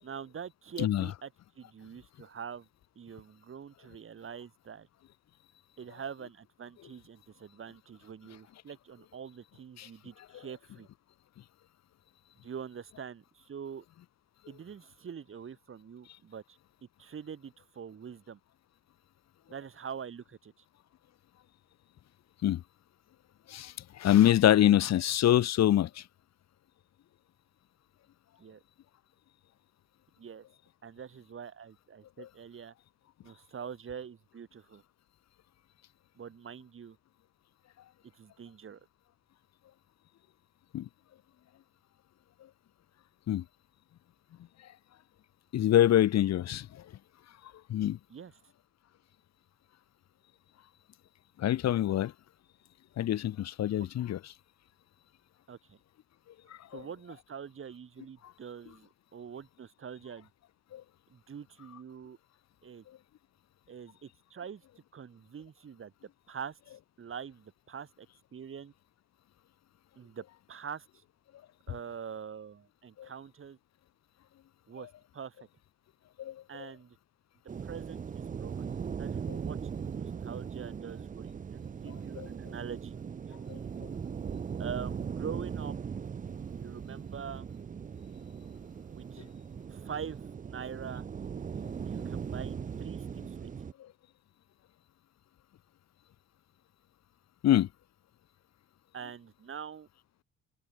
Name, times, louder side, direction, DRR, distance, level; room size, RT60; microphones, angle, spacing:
voice 1, 0.0-2.7 3.0-4.9 5.8-10.9 12.4-13.8 14.5-16.6 17.0-18.4 19.5-20.6 28.4-28.6 30.2-30.5 30.8-32.7 33.2-34.8 36.2-37.0 38.1-38.8 48.1-48.4 53.8-53.9 55.5-55.8 56.7-60.3 61.1-62.2 62.6-62.9 63.7-64.6 64.9-65.9 66.3-68.1 68.3-68.7 70.0-71.0 71.7-73.6 74.7-75.4 76.5-77.0 77.6-78.7 79.0-79.6 79.9-82.9 83.3-83.4 84.6-85.8 86.5-87.5 88.9-89.3 89.7-90.2 90.5-91.0 91.9-93.5 98.9-99.9, right 7 dB, 45° right, 2.2 m, -44 dB
voice 2, 23.5-26.0 32.2-32.3 40.7-40.9 43.3-43.4 45.5-46.8 47.7-48.0 51.4-52.1 53.0-54.2 56.7-56.8 60.7-60.8 73.0-73.1 76.2-76.3 79.3-79.4 82.2-82.3 83.5-83.6 97.4-97.7, left 12 dB, 60° left, 0.9 m, -25 dB
sound 1, 77.5-93.7, right 7 dB, 25° right, 0.5 m, -39 dB
cardioid pair, 90°, 30 cm